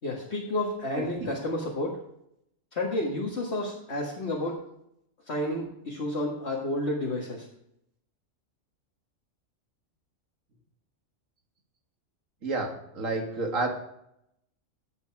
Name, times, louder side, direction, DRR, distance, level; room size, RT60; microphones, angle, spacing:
voice 1, 0.0-2.0 2.7-4.6 5.3-7.5, left 1 dB, 55° left, -3 dB, 2.1 m, -30 dB
voice 2, 12.4-13.7, right 3 dB, 85° right, 4 dB, 2.4 m, -30 dB
14.0 x 8.3 x 4.7 m, 0.77 s
omnidirectional pair, 1.3 m